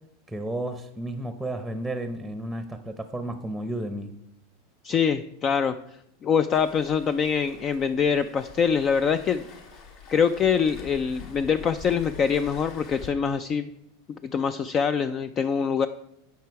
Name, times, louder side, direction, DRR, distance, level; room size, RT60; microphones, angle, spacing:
voice 1, 0.3-4.1, right 1 dB, ahead, 8 dB, 0.8 m, -32 dB
voice 2, 4.8-5.7 6.2-9.4 10.1-13.7 14.2-15.9, left 6 dB, 30° left, 12 dB, 0.4 m, -24 dB
Waves surf, 6.5-13.1, left 5 dB, 55° left, 2.3 m, -45 dB
16.5 x 5.8 x 4.7 m, 0.80 s
supercardioid pair, 140°, 0 cm